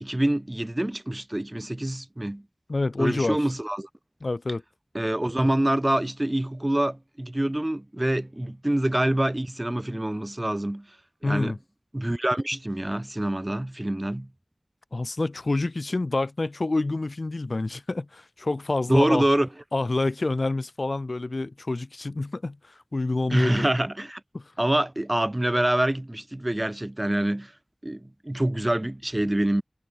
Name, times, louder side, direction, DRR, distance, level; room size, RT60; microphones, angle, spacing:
voice 1, 0.0-2.4 3.0-3.9 4.9-10.9 11.2-11.6 11.9-14.3 18.9-19.5 23.3-24.2 24.6-27.5 27.8-29.6, right 1 dB, 25° right, 0.4 m, -26 dB
voice 2, 2.7-3.4 4.2-4.6 11.2-11.6 14.9-19.3 19.7-23.6 24.3-24.5, left 2 dB, 70° left, 0.5 m, -27 dB
wide cardioid pair, 55°, 0 cm